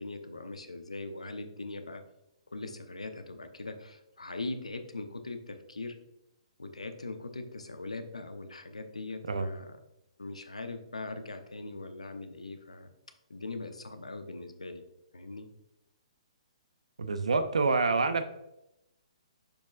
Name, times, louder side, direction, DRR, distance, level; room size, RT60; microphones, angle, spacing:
voice 1, 0.0-2.0 2.5-5.9 6.6-9.7 10.2-12.9 13.3-14.8 15.1-15.5, left 2 dB, 85° left, 8 dB, 0.8 m, -41 dB
voice 2, 17.0-18.2, right 4 dB, 75° right, 9 dB, 0.6 m, -27 dB
6.6 x 6.1 x 2.4 m, 0.86 s
figure-of-eight pair, 130°, 3 cm